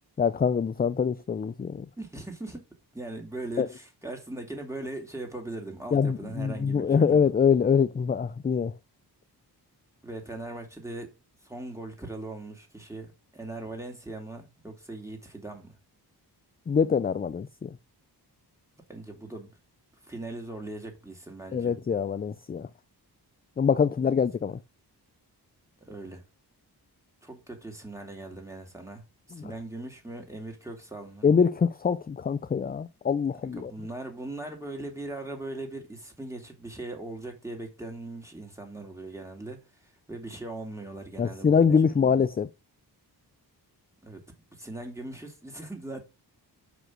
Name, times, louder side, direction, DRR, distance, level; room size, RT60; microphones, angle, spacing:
voice 1, 0.2-1.9 3.6-3.7 5.9-8.7 16.7-17.7 21.5-22.7 23.6-24.6 31.2-33.7 41.2-42.5, left 6 dB, 25° left, 0.4 m, -24 dB
voice 2, 2.0-2.6 2.9-7.2 10.0-11.1 11.4-15.8 18.9-19.5 20.0-21.7 25.8-26.2 27.2-31.3 33.4-39.6 40.1-42.1 44.0-44.2 44.5-46.0, right 2 dB, 5° right, 2.5 m, -40 dB
6.1 x 5.1 x 6.0 m
wide cardioid pair, 105°, 40 cm